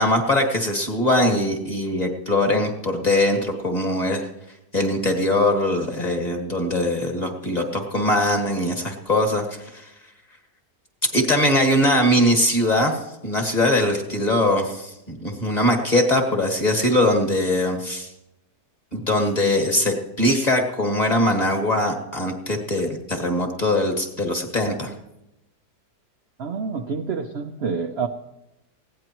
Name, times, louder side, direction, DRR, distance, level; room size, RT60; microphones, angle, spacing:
voice 1, 0.0-4.3 4.7-9.9 11.1-18.1 18.9-24.9, left 1 dB, 25° left, 2 dB, 1.8 m, -21 dB
voice 2, 26.4-28.1, right 5 dB, 55° right, 5 dB, 0.8 m, -27 dB
20.0 x 16.5 x 3.0 m, 0.90 s
omnidirectional pair, 1.8 m